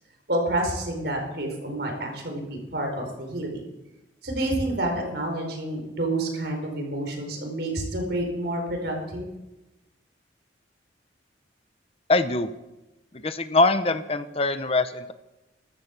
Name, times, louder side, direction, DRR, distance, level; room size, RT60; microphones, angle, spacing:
voice 1, 0.3-3.6 4.2-9.3, right 1 dB, 60° right, 2 dB, 4.9 m, -29 dB
voice 2, 12.1-12.5 13.2-15.1, left 2 dB, 30° left, 11 dB, 0.7 m, -23 dB
15.0 x 13.5 x 7.3 m, 0.99 s
head